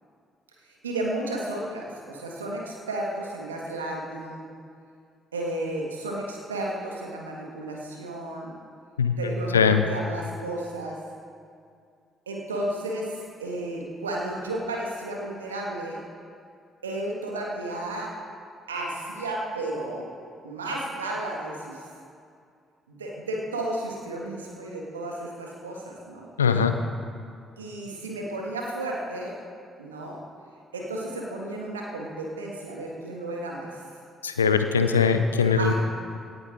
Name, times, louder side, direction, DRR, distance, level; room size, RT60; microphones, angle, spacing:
voice 1, 0.6-4.4 5.3-8.5 9.2-11.0 12.3-16.0 16.8-18.1 18.7-20.1 20.4-21.8 22.9-26.3 27.6-29.3 29.8-30.2 30.7-33.8 35.6-35.7, right 1 dB, 85° right, -1 dB, 1.5 m, -33 dB
voice 2, 9.5-9.8 26.4-26.8 34.2-35.7, left 6 dB, 90° left, 8 dB, 0.5 m, -21 dB
17.0 x 9.6 x 3.7 m, 2.3 s
figure-of-eight pair, 45°, 0 cm